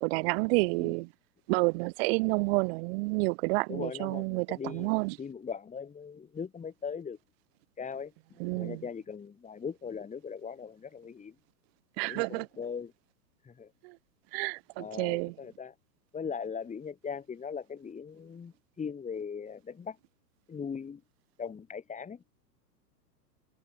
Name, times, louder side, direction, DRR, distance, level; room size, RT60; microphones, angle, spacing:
voice 1, 0.0-1.1 1.5-5.1 8.4-8.8 12.0-12.5 14.3-15.3, right 29 dB, 35° right, 1.0 m, -29 dB
voice 2, 3.7-4.9 5.2-7.2 7.8-11.3 12.1-12.9 13.4-13.7 14.8-15.7 16.1-20.0 20.5-21.0 21.4-22.2, left 6 dB, 15° left, 4.1 m, -39 dB
figure-of-eight pair, 110°, 50 cm